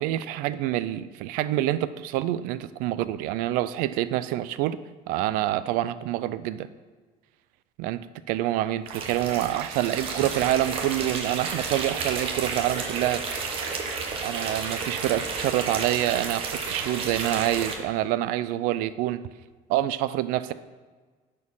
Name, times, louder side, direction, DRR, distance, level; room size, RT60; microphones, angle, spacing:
voice 1, 0.0-4.8 5.1-6.7 7.8-13.2 14.2-19.2 19.7-20.5, right 14 dB, 80° right, 15 dB, 0.5 m, -27 dB
sound 1, 8.9-17.7, right 4 dB, 40° right, 1.1 m, -31 dB
10.5 x 4.5 x 5.5 m, 1.4 s
cardioid pair, 170°, 14 cm